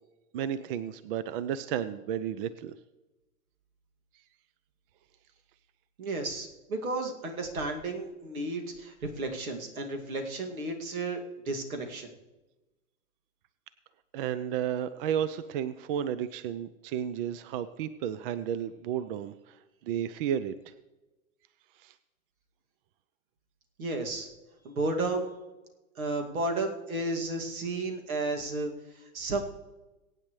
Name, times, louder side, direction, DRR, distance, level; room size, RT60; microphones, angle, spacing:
voice 1, 0.3-2.8 14.1-19.6 19.8-20.7 21.8-21.9, right 9 dB, 40° right, 15 dB, 0.6 m, -32 dB
voice 2, 6.0-12.1 23.8-24.3 24.6-25.3 26.0-28.7 29.1-29.4, right 2 dB, 80° right, 3 dB, 2.5 m, -33 dB
22.5 x 9.1 x 3.2 m, 1.1 s
hypercardioid pair, 125°, 42 cm